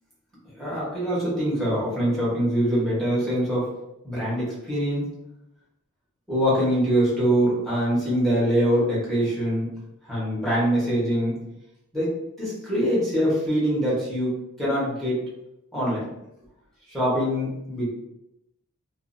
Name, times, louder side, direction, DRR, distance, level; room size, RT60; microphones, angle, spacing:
voice 1, 0.6-3.7 4.0-5.1 6.3-9.7 10.0-11.4 11.9-12.1 12.4-15.2 15.7-16.0 16.9-17.9, equal, ahead, -9 dB, 1.1 m, -24 dB
2.5 x 2.5 x 2.5 m, 0.86 s
head